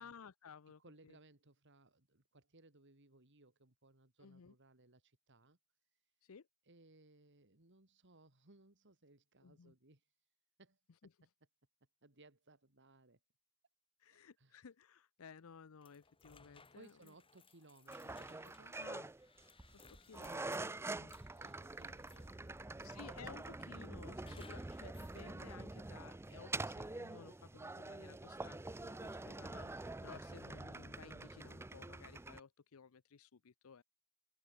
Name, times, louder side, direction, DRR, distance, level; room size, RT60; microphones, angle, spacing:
voice 1, 0.0-1.2 4.2-4.5 6.2-6.5 9.4-9.7 14.0-17.1 18.7-19.1 19.9-21.2 22.8-33.8, left 6 dB, 75° left, 0.6 m, -57 dB
voice 2, 0.8-5.6 5.9-6.0 6.7-10.1 10.6-10.8 12.0-13.2 14.0-14.6 16.7-18.8 21.4-23.0, right 2 dB, 55° right, 3.3 m, -64 dB
sound 1, 15.8-22.5 22.9-23.5 24.2-25.2, left 4 dB, 25° left, 3.7 m, -65 dB
sound 2, 17.9-32.4, right 2 dB, 10° right, 0.5 m, -46 dB
head